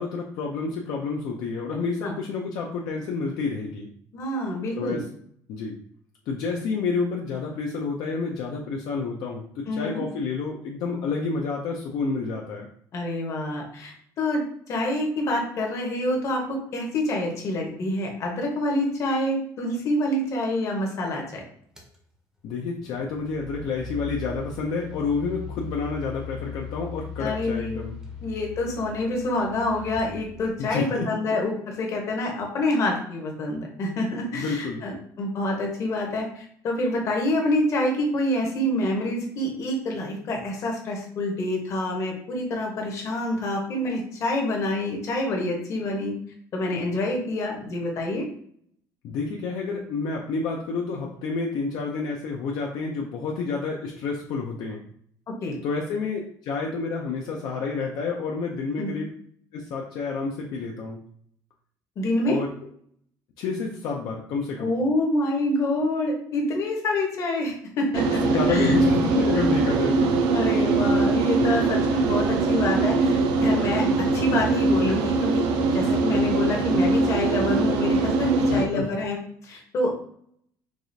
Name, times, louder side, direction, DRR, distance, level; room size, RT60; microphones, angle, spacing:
voice 1, 0.0-3.9 4.8-5.0 5.5-5.8 6.3-12.7 22.4-28.0 30.6-31.1 34.3-34.8 49.0-54.8 55.6-59.1 59.5-61.0 62.3-62.5 63.4-64.7 68.1-70.1 78.4-78.9, left 4 dB, 65° left, -1 dB, 0.5 m, -29 dB
voice 2, 4.1-5.0 9.7-10.0 12.9-21.4 27.2-27.9 28.2-46.1 46.5-48.2 55.3-55.5 58.8-58.9 62.0-62.4 64.6-68.7 70.3-79.2 79.4-79.9, left 1 dB, 45° left, 0 dB, 0.9 m, -27 dB
sound 1, 21.8-22.0 22.9-30.9, left 4 dB, 10° right, 0.6 m, -39 dB
sound 2, 67.9-78.7, right 3 dB, 80° right, 0.5 m, -22 dB
4.7 x 2.4 x 2.6 m, 0.63 s
cardioid pair, 165°, 7 cm